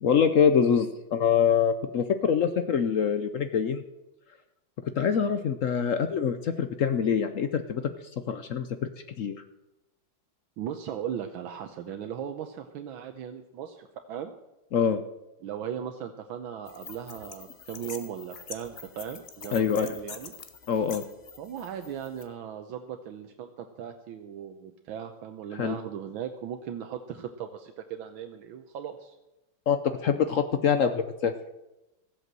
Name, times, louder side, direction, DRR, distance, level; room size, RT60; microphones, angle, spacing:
voice 1, 0.0-3.8 4.8-7.8 8.3-8.9 9.2-9.4 14.7-15.0 19.5-19.9 20.7-21.0 25.5-25.8 29.7-31.3, left 7 dB, 70° left, 9 dB, 0.7 m, -25 dB
voice 2, 10.6-14.3 15.4-20.3 21.4-29.1, right 9 dB, 75° right, 6 dB, 1.6 m, -38 dB
sound 1, 16.7-22.2, left 6 dB, 40° left, 0.9 m, -45 dB
15.0 x 8.2 x 7.5 m, 0.99 s
omnidirectional pair, 2.3 m